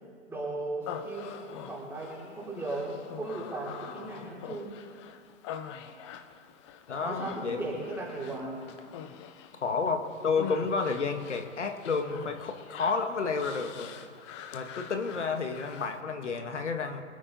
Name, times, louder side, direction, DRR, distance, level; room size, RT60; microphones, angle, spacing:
voice 1, 0.3-4.7 5.8-5.9 7.0-8.7, right 2 dB, 5° right, -7 dB, 3.5 m, -37 dB
Human voice, 0.8-16.0, left 9 dB, 25° left, 0.7 m, -45 dB
voice 2, 6.9-7.6 9.5-13.9 14.5-17.0, left 4 dB, 70° left, 6 dB, 1.7 m, -31 dB
24.5 x 8.7 x 4.1 m, 2.1 s
figure-of-eight pair, 130°, 37 cm